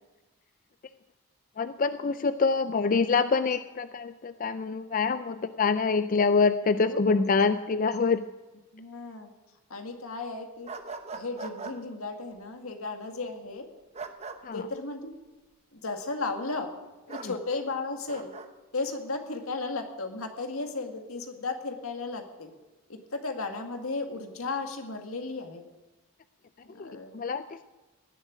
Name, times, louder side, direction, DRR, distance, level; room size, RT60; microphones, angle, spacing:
voice 1, 1.6-8.2 14.4-14.6 26.8-26.9 27.1-27.6, left 4 dB, 40° left, 11 dB, 0.4 m, -25 dB
voice 2, 6.8-7.8 8.7-9.3 9.7-10.7 11.1-13.7 14.5-15.2 15.7-16.7 17.1-18.3 18.7-22.5 22.9-25.6 26.7-27.2, left 3 dB, 80° left, 5 dB, 2.0 m, -35 dB
sound 1, 10.7-11.8 13.9-14.4 17.1-17.3 18.1-18.5, right 4 dB, 30° right, 0.9 m, -39 dB
17.5 x 7.7 x 9.9 m, 1.2 s
head